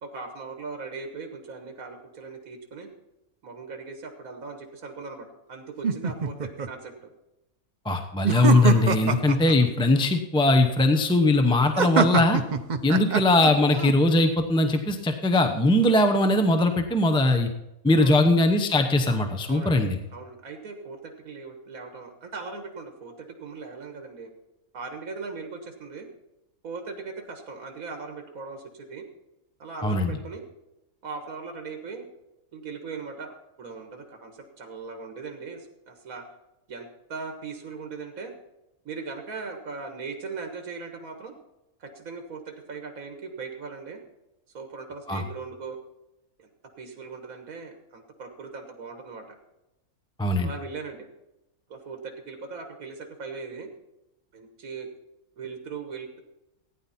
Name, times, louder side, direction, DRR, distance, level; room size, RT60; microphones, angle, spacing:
voice 1, 0.0-2.9 3.4-7.1 9.0-9.2 13.0-13.1 18.0-18.3 19.5-19.8 20.1-24.3 24.7-26.1 26.6-29.0 29.6-30.4 31.0-32.1 32.5-36.2 36.7-38.3 38.9-41.3 41.8-44.0 44.5-45.8 46.4-46.5 46.8-49.4 50.4-51.1 51.7-53.7 54.3-54.9 55.4-56.2, right 4 dB, 75° right, 4 dB, 1.9 m, -39 dB
sound 1, 5.8-6.7 8.2-9.6 11.8-13.9, right 6 dB, 45° right, 0.6 m, -24 dB
voice 2, 7.8-12.4 12.8-17.5 17.8-20.0 29.8-30.1 45.1-45.2 50.2-50.5, left 2 dB, 5° left, 6 dB, 0.7 m, -21 dB
15.5 x 9.8 x 4.3 m, 0.93 s
omnidirectional pair, 1.5 m